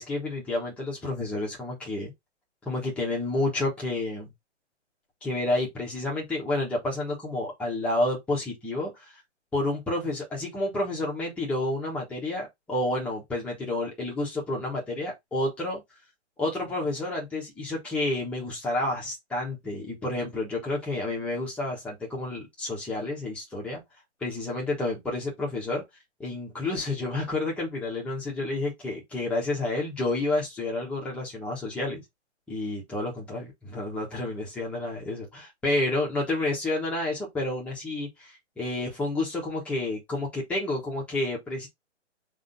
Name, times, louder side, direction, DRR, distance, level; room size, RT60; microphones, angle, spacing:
voice 1, 0.0-2.1 2.6-4.3 5.2-8.9 9.5-15.8 16.4-23.8 24.2-25.8 26.2-32.0 32.5-41.7, left 2 dB, 5° left, 1.2 m, -30 dB
3.7 x 3.4 x 4.0 m
hypercardioid pair, 155°, 36 cm